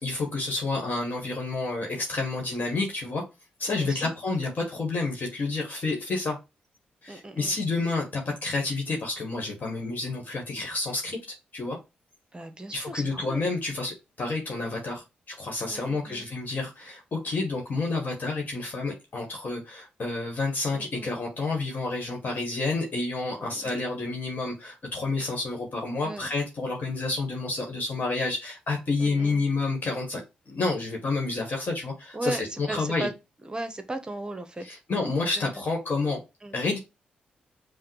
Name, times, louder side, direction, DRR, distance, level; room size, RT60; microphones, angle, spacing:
voice 1, 0.0-3.2 3.6-6.4 7.0-11.2 11.5-11.8 12.7-30.2 30.5-33.1 34.6-36.2 36.5-36.8, left 3 dB, 55° left, 1.2 m, -29 dB
voice 2, 3.7-4.1 7.1-7.6 12.3-13.4 15.7-16.3 20.7-21.1 23.4-23.7 26.0-26.3 29.0-29.4 32.1-33.1 33.4-34.8 35.3-35.6 36.4-36.6, right 2 dB, 25° right, 0.8 m, -37 dB
5.6 x 2.0 x 3.1 m
supercardioid pair, 50°, 4 cm